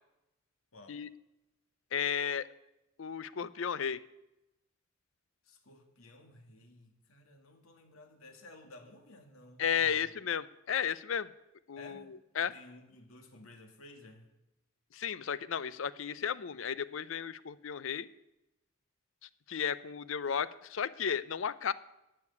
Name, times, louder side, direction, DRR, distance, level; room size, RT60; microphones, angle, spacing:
voice 1, 1.9-2.5 3.0-4.0 9.6-11.3 11.7-12.5 14.9-18.1 19.2-21.7, left 7 dB, 70° left, 17 dB, 0.5 m, -34 dB
voice 2, 5.4-10.1 11.8-14.3, left 2 dB, 85° left, 5 dB, 2.1 m, -55 dB
12.0 x 6.6 x 9.6 m, 0.92 s
head